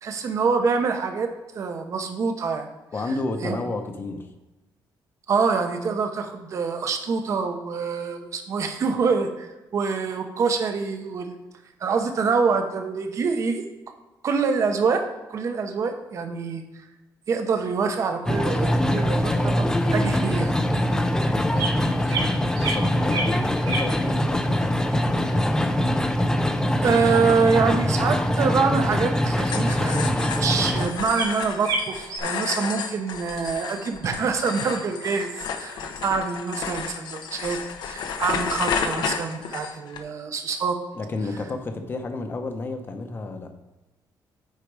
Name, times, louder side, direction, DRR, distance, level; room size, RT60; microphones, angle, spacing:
voice 1, 0.0-1.3 1.5-2.7 3.4-3.6 5.3-11.4 11.8-13.6 14.2-15.0 15.3-16.6 17.3-19.7 19.9-20.5 26.8-35.3 35.6-37.6 37.9-40.8, right 5 dB, 40° right, 5 dB, 0.9 m, -25 dB
voice 2, 2.9-4.3 22.0-25.9 40.9-43.5, left 3 dB, 30° left, 6 dB, 0.8 m, -32 dB
sound 1, 18.3-30.9, left 1 dB, 10° left, 0.5 m, -23 dB
sound 2, 21.5-21.7 22.0-22.3 22.5-23.3 23.6-23.9 28.8-29.1 29.3-29.4 30.1-30.2 30.6-30.8 31.1-31.3 31.6-32.2, right 3 dB, 75° right, 2.6 m, -29 dB
sound 3, 29.4-40.0, left 6 dB, 70° left, 0.8 m, -32 dB
8.3 x 5.0 x 4.8 m, 1.1 s
cardioid pair, 175°, 8 cm